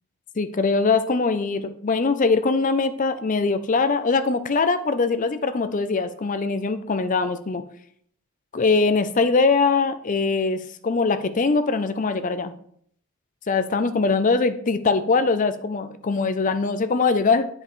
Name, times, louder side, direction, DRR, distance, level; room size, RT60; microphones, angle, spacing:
voice 1, 0.4-7.6 8.5-12.5 13.5-17.5, left 4 dB, 35° left, 11 dB, 0.5 m, -22 dB
8.8 x 5.3 x 3.2 m, 0.65 s
head